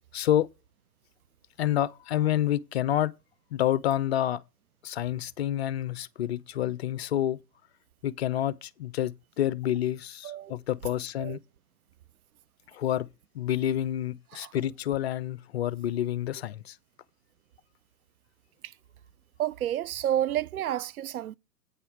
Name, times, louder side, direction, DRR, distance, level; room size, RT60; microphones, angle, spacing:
voice 1, 0.1-0.5 1.6-3.1 3.5-4.4 4.8-7.4 8.0-11.4 12.7-13.1 13.3-16.8, left 12 dB, 40° left, 0.5 m, -28 dB
voice 2, 19.4-21.4, right 11 dB, 65° right, 0.5 m, -30 dB
8.5 x 5.5 x 5.8 m
figure-of-eight pair, 115°, 48 cm